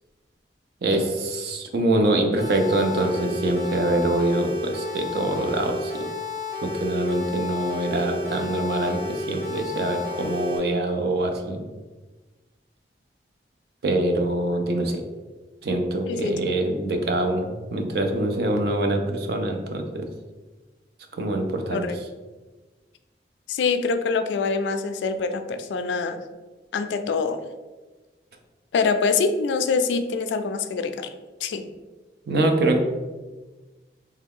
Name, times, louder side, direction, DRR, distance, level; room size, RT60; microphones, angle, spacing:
voice 1, 0.8-5.9 6.6-11.6 13.8-15.0 15.6-20.1 21.2-21.8 32.3-32.8, right 1 dB, 60° right, 4 dB, 0.5 m, -24 dB
sound 1, 2.4-10.6, left 3 dB, 80° right, 1.2 m, -32 dB
voice 2, 16.1-16.4 21.7-22.0 23.5-26.3 26.7-27.4 28.7-31.1 31.4-31.6, left 4 dB, 90° left, 9 dB, 0.3 m, -25 dB
3.2 x 2.3 x 3.5 m, 1.2 s
head